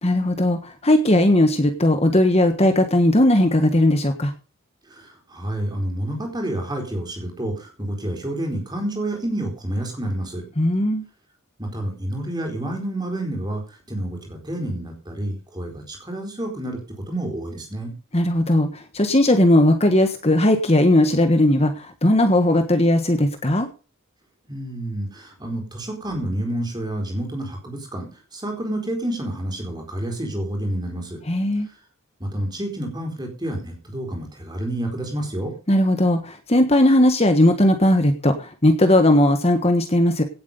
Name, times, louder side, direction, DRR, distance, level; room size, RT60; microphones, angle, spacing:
voice 1, 0.0-4.3 10.6-11.0 18.1-23.7 31.2-31.7 35.7-40.2, left 1 dB, 30° left, 7 dB, 1.5 m, -18 dB
voice 2, 4.9-10.4 11.6-13.6 13.9-16.8 17.1-17.9 24.5-31.2 32.2-35.5, right 1 dB, 20° right, 3 dB, 4.3 m, -29 dB
17.5 x 8.4 x 5.4 m, 0.35 s
head